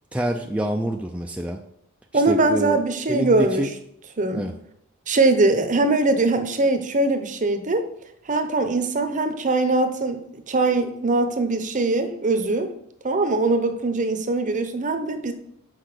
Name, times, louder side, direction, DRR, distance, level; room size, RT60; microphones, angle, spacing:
voice 1, 0.1-1.6 2.1-2.8 3.1-3.7 4.3-4.5, right 1 dB, 5° right, 0.4 m, -26 dB
voice 2, 2.1-3.6 4.2-4.5 5.1-7.9 8.3-12.7 13.0-15.3, right 2 dB, 35° right, 0.8 m, -21 dB
6.0 x 5.2 x 6.6 m
head